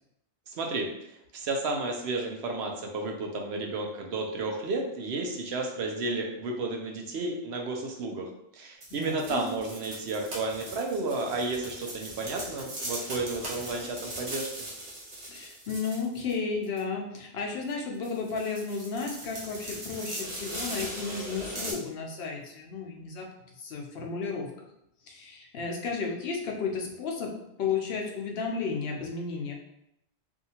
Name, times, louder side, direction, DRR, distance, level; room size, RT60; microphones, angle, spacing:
voice 1, 0.5-14.5, right 3 dB, 85° right, 1 dB, 0.9 m, -32 dB
sound 1, 8.8-16.3 16.6-16.8 17.7-17.8 18.0-21.7, right 1 dB, 45° right, 0.9 m, -39 dB
voice 2, 8.9-9.5 15.2-24.7 25.0-27.3 27.6-29.5, left 5 dB, 75° left, 0 dB, 0.8 m, -33 dB
2.7 x 2.4 x 2.8 m, 0.80 s
omnidirectional pair, 1.1 m